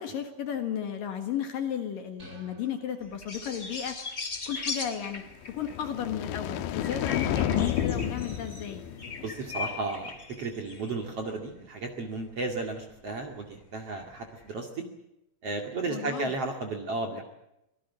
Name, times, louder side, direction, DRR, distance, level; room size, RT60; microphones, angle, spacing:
voice 1, 0.0-4.0 4.5-8.8 15.9-16.3, left 9 dB, 60° left, 7 dB, 2.9 m, -34 dB
sound 1, 2.2-3.8, right 2 dB, 20° right, 3.3 m, -53 dB
sound 2, 3.1-5.9 6.8-11.0 12.7-12.8 13.6-14.5, left 4 dB, 25° left, 1.5 m, -39 dB
sound 3, 5.4-9.7, left 10 dB, 85° left, 3.4 m, -31 dB
voice 2, 9.2-14.8 15.4-17.2, right 3 dB, 40° right, 4 dB, 2.6 m, -34 dB
25.5 x 18.0 x 8.4 m, 0.85 s
omnidirectional pair, 5.1 m